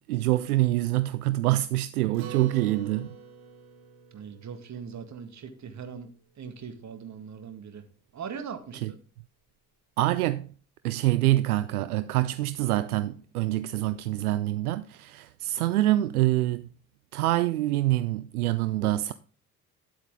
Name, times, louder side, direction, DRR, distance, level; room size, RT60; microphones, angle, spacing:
voice 1, 0.1-3.1 8.8-8.9 10.0-10.5 10.8-16.7 17.1-19.1, right 16 dB, 75° right, 0.6 m, -25 dB
Acoustic guitar, 2.1-6.8, right 6 dB, 55° right, 3.6 m, -47 dB
voice 2, 4.1-6.1 6.4-7.8 8.1-9.0, right 6 dB, 40° right, 1.9 m, -40 dB
10.5 x 8.0 x 3.7 m
figure-of-eight pair, 55°, 45 cm